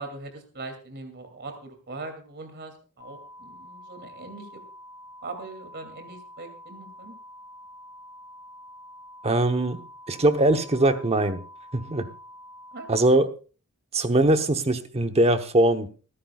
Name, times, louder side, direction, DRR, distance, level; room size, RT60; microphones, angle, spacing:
voice 1, 0.0-4.6 5.2-7.1 11.8-12.0 12.7-12.9, right 3 dB, 50° right, 2.8 m, -41 dB
sound 1, 3.0-13.0, equal, 70° left, 3.6 m, -47 dB
voice 2, 9.2-9.8 10.1-11.4 11.7-12.0 12.9-13.3 13.9-15.9, right 1 dB, 30° right, 1.0 m, -21 dB
25.0 x 10.0 x 2.4 m
head